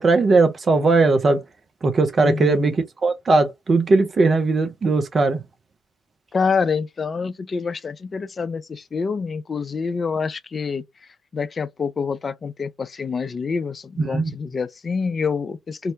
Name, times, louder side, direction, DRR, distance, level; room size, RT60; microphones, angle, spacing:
voice 1, 0.0-1.4 1.8-2.8 3.0-5.4 14.0-14.3, right 3 dB, 35° right, 0.4 m, -18 dB
voice 2, 2.2-2.8 6.3-10.8 11.3-15.9, left 5 dB, 35° left, 0.3 m, -26 dB
2.6 x 2.0 x 2.6 m
figure-of-eight pair, 45°, 0 cm